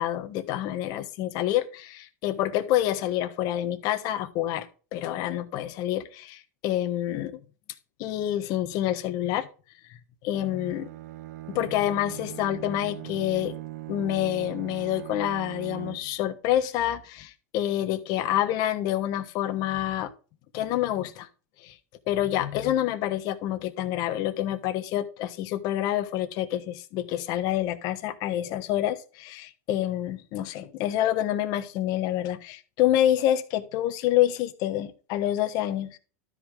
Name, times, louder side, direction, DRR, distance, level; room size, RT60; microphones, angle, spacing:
voice 1, 0.0-4.7 4.9-7.4 8.0-9.5 10.2-10.9 11.5-13.5 13.9-20.1 20.5-21.3 21.6-21.7 22.1-36.0, left 12 dB, 50° left, 1.2 m, -27 dB
Bowed string instrument, 10.3-16.3, right 16 dB, 75° right, 0.7 m, -40 dB
12.5 x 5.0 x 3.6 m
supercardioid pair, 125°, 9 cm